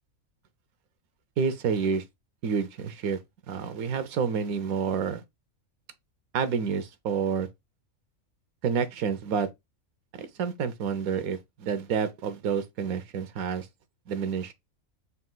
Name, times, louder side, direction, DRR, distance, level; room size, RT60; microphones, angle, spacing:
voice 1, 1.4-2.0 2.4-3.2 3.5-5.2 6.3-7.5 8.6-9.5 10.1-13.7 14.1-14.5, right 6 dB, 90° right, 1.1 m, -29 dB
4.2 x 2.4 x 3.8 m
omnidirectional pair, 1.5 m